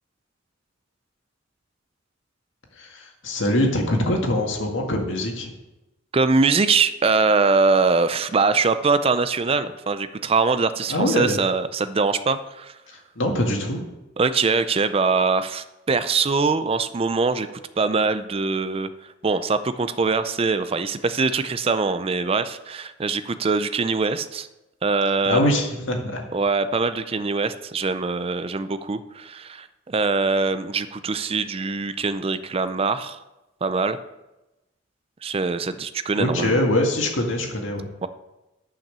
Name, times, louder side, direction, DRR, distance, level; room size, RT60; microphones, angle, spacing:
voice 1, 2.8-5.5 10.9-11.4 13.2-13.8 25.2-26.2 36.1-37.9, left 1 dB, 80° left, 1 dB, 1.9 m, -23 dB
voice 2, 6.1-12.7 14.2-17.5 17.8-18.9 19.2-24.5 24.8-25.5 26.3-33.2 33.6-34.0 35.2-36.6 38.0-38.1, right 4 dB, 30° right, 12 dB, 0.4 m, -23 dB
10.5 x 5.8 x 6.7 m, 0.99 s
head